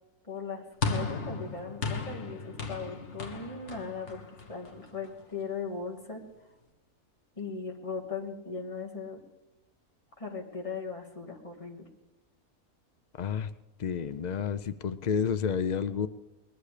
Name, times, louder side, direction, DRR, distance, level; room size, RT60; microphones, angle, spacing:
voice 1, 0.3-4.2 4.5-6.2 7.4-9.2 10.2-11.8, left 5 dB, 20° left, 0 dB, 2.3 m, -38 dB
sound 1, 0.8-5.2, left 4 dB, 55° left, 1.6 m, -36 dB
voice 2, 13.2-13.5 13.8-16.1, left 7 dB, 75° left, 11 dB, 0.4 m, -30 dB
21.0 x 11.0 x 5.0 m, 1.0 s
omnidirectional pair, 1.5 m